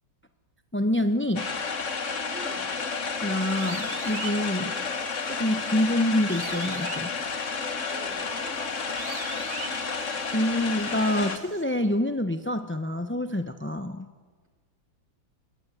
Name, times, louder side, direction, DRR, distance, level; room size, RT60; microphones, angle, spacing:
voice 1, 0.7-1.5 3.2-4.7 5.3-7.1 10.3-14.1, left 1 dB, 15° left, 9 dB, 0.4 m, -26 dB
sound 1, 1.4-11.4, left 5 dB, 40° left, 1.8 m, -31 dB
voice 2, 2.3-2.7 4.5-4.9 7.9-10.1, right 2 dB, 35° right, 2 dB, 5.5 m, -44 dB
sound 2, 3.4-11.6, right 5 dB, 80° right, 2.7 m, -43 dB
27.5 x 21.5 x 9.4 m, 1.4 s
omnidirectional pair, 2.1 m